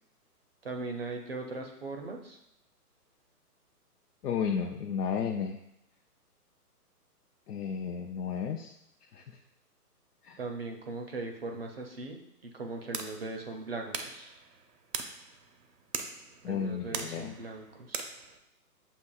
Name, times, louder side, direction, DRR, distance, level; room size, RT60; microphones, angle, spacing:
voice 1, 0.6-2.4 10.4-14.3 16.4-18.0, right 3 dB, 40° right, 3 dB, 0.4 m, -39 dB
voice 2, 4.2-5.6 7.5-8.7 9.1-9.2 10.2-10.4 16.4-17.3, left 7 dB, 75° left, 2 dB, 0.6 m, -33 dB
sound 1, 12.8-18.4, right 5 dB, 80° right, 0.7 m, -41 dB
6.9 x 2.8 x 2.3 m, 0.80 s
hypercardioid pair, 155°, 47 cm